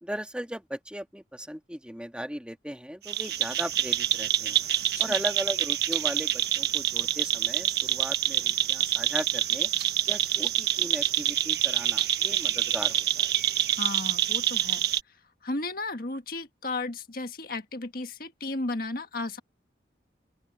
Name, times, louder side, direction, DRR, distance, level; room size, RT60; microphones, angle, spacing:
voice 1, 0.0-4.6 5.0-9.7 10.1-13.3, equal, 5° right, 2.1 m, -37 dB
sound 1, 3.1-15.0, right 11 dB, 60° right, 1.5 m, -26 dB
voice 2, 13.7-14.8 15.4-19.4, left 2 dB, 55° left, 1.7 m, -34 dB
open air
head